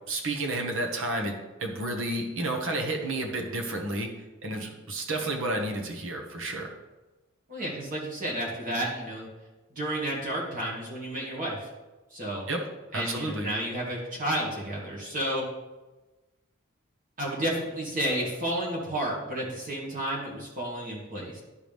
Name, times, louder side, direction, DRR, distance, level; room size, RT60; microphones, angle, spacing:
voice 1, 0.1-4.1 4.4-6.7 12.5-12.7 12.9-13.5, right 2 dB, 65° right, 2 dB, 1.4 m, -31 dB
voice 2, 7.5-9.3 9.8-11.7 12.1-12.5 12.9-15.5 17.2-21.4, right 1 dB, 40° right, -5 dB, 2.2 m, -31 dB
12.0 x 4.9 x 3.6 m, 1.1 s
head